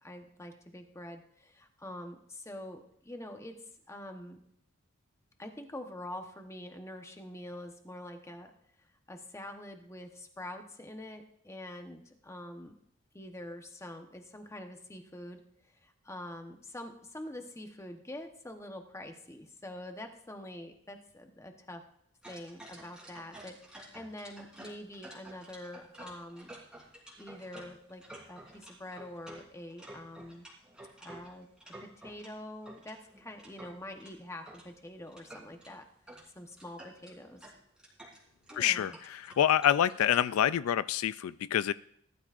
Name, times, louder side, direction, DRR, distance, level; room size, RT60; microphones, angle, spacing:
voice 1, 0.0-3.5 3.9-4.4 5.4-8.5 9.1-12.7 13.1-15.4 15.7-21.8 22.3-23.6 23.9-26.5 27.2-30.4 31.0-35.8 36.3-37.4 38.5-39.0, left 1 dB, 15° left, 5 dB, 1.0 m, -45 dB
sound 1, 22.2-32.3 32.7-34.7 35.1-35.7 36.1-36.2 36.5-40.3, right 1 dB, 5° right, 3.5 m, -51 dB
voice 2, 38.5-41.7, left 10 dB, 80° left, 16 dB, 0.3 m, -27 dB
19.0 x 12.5 x 2.5 m, 0.71 s
head